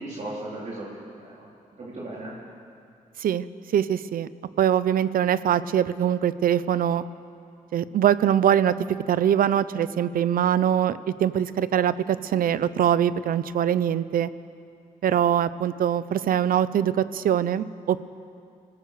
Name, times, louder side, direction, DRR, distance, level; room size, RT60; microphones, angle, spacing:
voice 1, 0.0-1.5 1.8-2.3, right 1 dB, 55° right, -6 dB, 4.2 m, -36 dB
voice 2, 3.7-4.3 4.6-7.0 7.7-8.7 9.1-14.3 15.0-18.0, right 9 dB, 80° right, 15 dB, 0.7 m, -23 dB
24.5 x 17.0 x 6.9 m, 2.4 s
cardioid pair, 85°, 15 cm